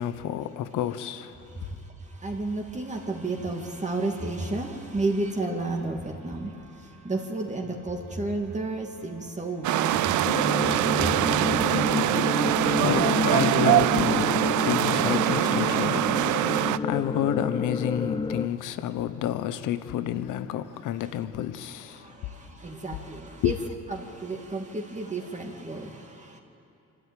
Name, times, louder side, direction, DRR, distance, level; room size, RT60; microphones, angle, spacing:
voice 1, 0.0-1.7 12.4-22.3 23.4-23.6, left 11 dB, 90° left, 1.0 m, -30 dB
voice 2, 2.0-11.1 11.4-11.5 21.9-23.5 23.9-26.4, right 2 dB, 25° right, 2.4 m, -32 dB
sound 1, 9.6-16.8, right 14 dB, 75° right, 0.5 m, -23 dB
sound 2, 10.2-18.5, left 4 dB, 15° left, 0.6 m, -29 dB
25.5 x 12.5 x 9.3 m
cardioid pair, 90°, 30 cm